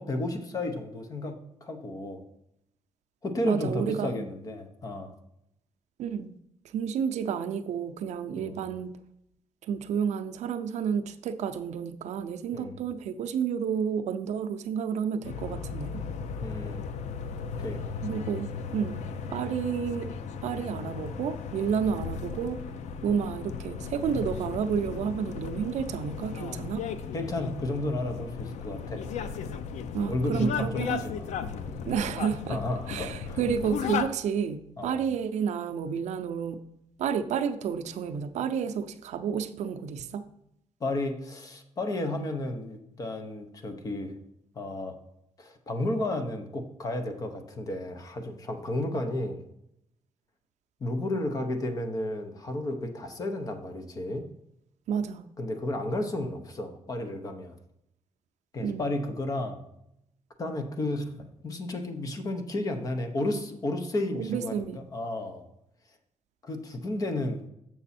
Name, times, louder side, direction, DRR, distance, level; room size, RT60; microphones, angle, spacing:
voice 1, 0.0-2.2 3.2-5.1 8.4-8.6 12.5-12.8 16.4-16.8 17.6-17.8 27.1-29.0 30.1-31.3 31.6-31.9 32.5-33.4 34.8-35.0 40.8-44.1 44.5-44.9 45.4-49.4 50.8-54.2 55.4-57.6 58.5-59.6 60.4-65.4 66.4-67.5, left 1 dB, 30° left, 6 dB, 0.8 m, -32 dB
voice 2, 3.4-4.3 6.0-6.3 6.6-9.0 9.6-16.0 18.0-19.0 19.3-20.1 20.4-22.6 23.0-26.8 29.9-31.0 31.9-32.6 32.9-36.6 37.0-40.2 54.9-55.3 58.6-58.9 64.1-64.8, right 7 dB, 75° right, 9 dB, 0.5 m, -30 dB
sound 1, 15.2-34.1, left 6 dB, 75° left, 0.5 m, -36 dB
7.0 x 6.1 x 4.2 m, 0.79 s
wide cardioid pair, 180°, 12 cm